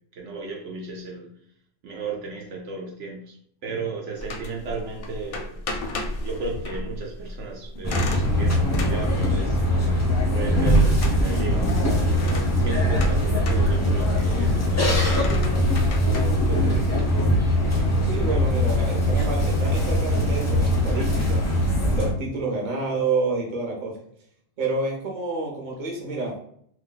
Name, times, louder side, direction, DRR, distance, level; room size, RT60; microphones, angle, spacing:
voice 1, 0.1-1.3 1.8-3.4 3.6-5.6 6.2-8.1 8.4-15.7 16.1-16.9, right 3 dB, 75° right, -1 dB, 0.9 m, -35 dB
sound 1, 4.2-18.7, left 1 dB, 60° left, 0.6 m, -35 dB
sound 2, 7.8-22.1, equal, 25° left, 0.3 m, -21 dB
voice 2, 18.0-21.4 21.9-23.9 24.6-26.3, right 3 dB, 40° right, -1 dB, 0.9 m, -28 dB
2.5 x 2.2 x 3.8 m, 0.66 s
omnidirectional pair, 1.3 m